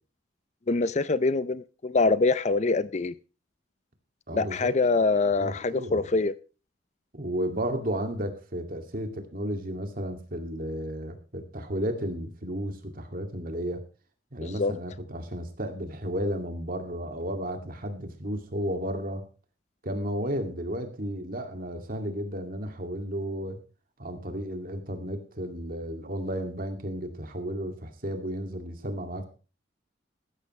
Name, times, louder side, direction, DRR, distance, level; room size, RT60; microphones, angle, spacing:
voice 1, 0.7-3.1 4.3-6.3 14.4-14.7, left 3 dB, 35° left, 0.5 m, -24 dB
voice 2, 4.3-4.8 5.4-6.1 7.1-13.8 14.3-19.3 19.8-23.6 24.0-29.3, equal, 50° right, 2.4 m, -33 dB
14.5 x 13.5 x 3.2 m
head